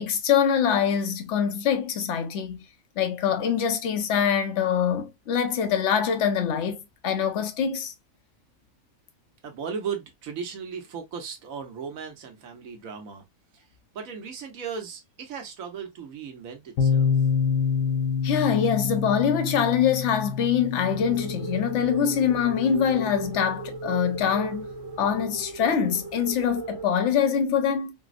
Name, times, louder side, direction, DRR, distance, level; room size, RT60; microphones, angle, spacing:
voice 1, 0.0-2.6 3.0-7.9 18.2-24.6 25.0-27.9, left 8 dB, 65° left, 1.0 m, -24 dB
voice 2, 9.4-13.2 13.5-13.6 13.9-17.1, right 6 dB, 80° right, 1.2 m, -36 dB
sound 1, 16.8-24.5, left 6 dB, 80° left, 1.2 m, -28 dB
sound 2, 20.9-26.8, right 4 dB, 60° right, 1.3 m, -37 dB
4.2 x 2.0 x 2.3 m
omnidirectional pair, 1.4 m